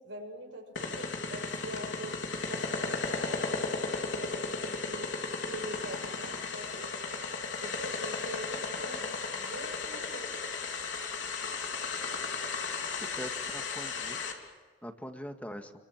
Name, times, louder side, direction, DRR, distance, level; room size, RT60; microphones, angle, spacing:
voice 1, 0.0-5.1 5.4-7.0 7.6-10.3, right 1 dB, 80° right, 3 dB, 6.0 m, -44 dB
sound 1, 0.8-14.3, left 4 dB, 85° left, 3.5 m, -35 dB
voice 2, 13.0-14.2 14.8-15.7, equal, 10° left, 5 dB, 1.9 m, -42 dB
29.5 x 23.0 x 7.4 m, 1.4 s
head